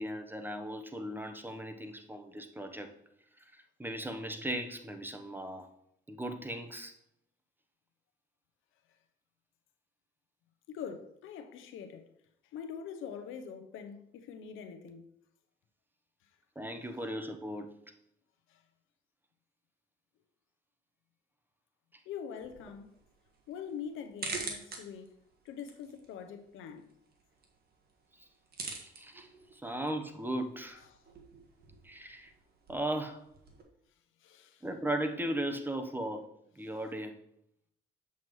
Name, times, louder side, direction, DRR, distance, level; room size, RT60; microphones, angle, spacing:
voice 1, 0.0-2.9 3.4-5.7 6.1-6.9 16.5-17.8 21.9-22.0 28.2-28.3 28.8-30.8 31.8-32.3 32.7-33.2 34.6-36.3 36.5-37.2, right 1 dB, 10° right, 0.9 m, -37 dB
voice 2, 10.7-12.0 12.5-15.0 22.1-22.9 23.5-25.1 25.4-26.9 34.2-34.6, left 7 dB, 90° left, 0.8 m, -43 dB
sound 1, 22.4-33.6, right 4 dB, 50° right, 1.5 m, -47 dB
7.5 x 7.0 x 3.1 m
cardioid pair, 90°, 20 cm